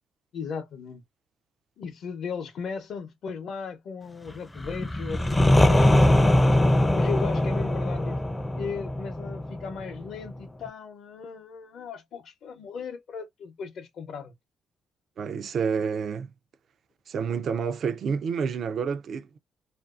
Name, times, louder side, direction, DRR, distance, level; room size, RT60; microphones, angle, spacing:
voice 1, 0.3-1.0 1.8-8.2 8.6-14.3, left 5 dB, 65° left, 0.7 m, -37 dB
sound 1, 4.6-10.3, left 1 dB, 15° left, 0.4 m, -22 dB
voice 2, 15.2-16.3 17.1-19.4, right 6 dB, 60° right, 0.4 m, -29 dB
2.5 x 2.3 x 2.3 m
cardioid pair, 90°, 0 cm